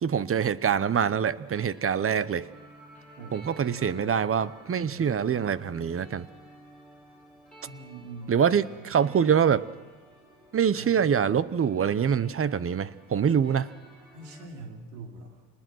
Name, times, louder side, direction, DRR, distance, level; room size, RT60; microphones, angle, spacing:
voice 1, 0.0-2.5 3.3-6.3 8.3-9.7 10.5-13.7, right 7 dB, 30° right, 0.9 m, -25 dB
sound 1, 1.5-14.5, equal, ahead, 7.4 m, -52 dB
voice 2, 3.2-4.1 4.8-5.4 7.6-9.3 10.7-11.1 14.1-15.5, right 3 dB, 90° right, 3.6 m, -44 dB
27.0 x 20.0 x 6.3 m
supercardioid pair, 95°, 48 cm